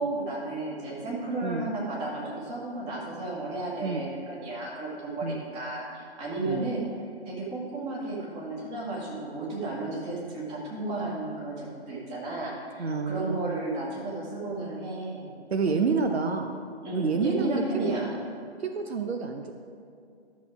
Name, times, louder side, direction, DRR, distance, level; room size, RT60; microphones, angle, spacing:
voice 1, 0.0-6.9 7.3-15.3 15.6-15.8 16.8-18.1, right 2 dB, 20° right, -4 dB, 1.9 m, -33 dB
voice 2, 12.8-13.6 15.5-16.5 16.9-18.0 18.6-19.5, right 4 dB, 70° right, 5 dB, 0.8 m, -28 dB
12.0 x 6.4 x 4.9 m, 2.4 s
figure-of-eight pair, 140°, 33 cm